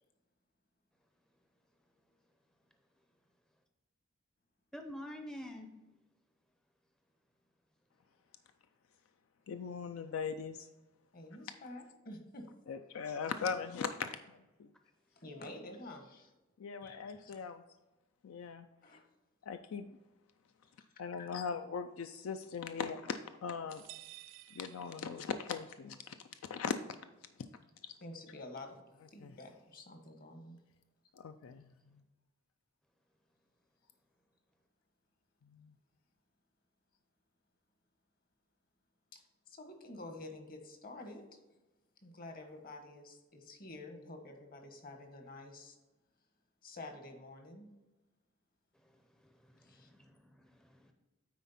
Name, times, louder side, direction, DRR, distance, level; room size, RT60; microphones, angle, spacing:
voice 1, 4.7-5.7 48.8-48.9 49.2-50.9, left 1 dB, 5° left, 4 dB, 0.5 m, -48 dB
voice 2, 9.5-10.7 12.7-14.7 16.6-17.6 18.2-18.7 19.4-20.0 21.0-23.9 24.5-26.8 27.8-27.9 29.2-29.3 31.1-32.0 35.4-35.7, left 6 dB, 70° left, 9 dB, 0.4 m, -40 dB
voice 3, 11.1-12.5 15.2-16.3 16.8-17.4 18.8-19.0 20.6-20.7 21.2-21.3 28.0-28.8 29.1-30.6 39.1-41.4 42.0-45.8 46.6-47.7 49.6-49.9, left 2 dB, 45° left, 5 dB, 1.1 m, -49 dB
sound 1, 23.7-25.6, right 16 dB, 60° right, 0.3 m, -54 dB
9.4 x 4.1 x 4.1 m, 1.1 s
head